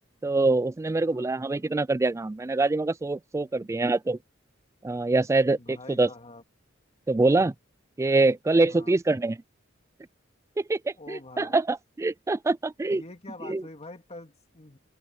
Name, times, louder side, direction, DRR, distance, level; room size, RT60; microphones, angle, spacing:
voice 1, 0.2-4.2 4.8-6.1 7.1-7.5 8.0-9.4 10.6-13.0 13.4-13.6, right 2 dB, 15° right, 0.3 m, -24 dB
voice 2, 1.0-1.3 3.4-3.6 5.6-6.4 8.7-8.9 11.0-11.6 12.9-14.8, left 2 dB, 35° left, 2.3 m, -45 dB
open air
head